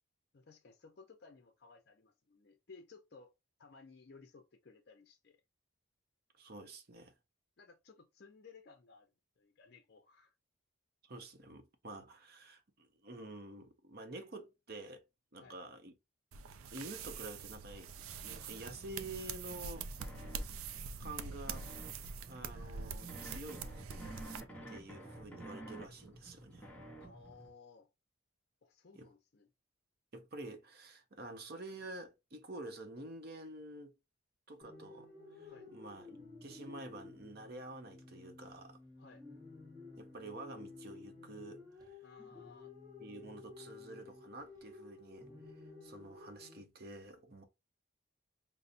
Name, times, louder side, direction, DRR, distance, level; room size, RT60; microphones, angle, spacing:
voice 1, 0.3-3.3 3.6-5.4 7.6-9.1 9.4-10.3 15.4-15.6 27.0-27.9 28.6-29.5 35.5-35.7 39.0-39.2 42.0-42.7, left 4 dB, 50° left, 0.5 m, -58 dB
voice 2, 6.4-7.1 11.0-15.0 15.3-15.9 16.7-17.9 18.2-19.9 21.0-21.7 22.3-23.7 24.7-26.7 28.9-29.1 30.1-33.9 34.5-38.8 40.0-41.9 43.0-47.4, right 2 dB, 50° right, 0.7 m, -49 dB
sound 1, 16.3-24.4, right 5 dB, 90° right, 0.4 m, -44 dB
sound 2, 18.0-27.5, right 1 dB, 5° left, 0.7 m, -52 dB
sound 3, 34.6-46.6, left 3 dB, 20° right, 1.0 m, -53 dB
5.4 x 2.0 x 2.5 m
head